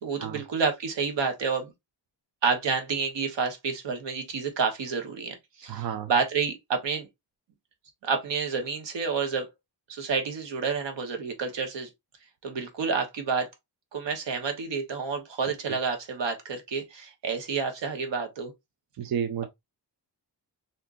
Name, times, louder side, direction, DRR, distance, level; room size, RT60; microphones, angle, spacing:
voice 1, 0.0-1.7 2.4-7.1 8.0-9.5 9.9-11.9 12.4-13.5 13.9-18.5, right 5 dB, 90° right, 1.1 m, -29 dB
voice 2, 5.7-6.1 19.0-19.5, right 8 dB, 55° right, 0.5 m, -31 dB
3.6 x 2.7 x 2.5 m
wide cardioid pair, 160°, 42 cm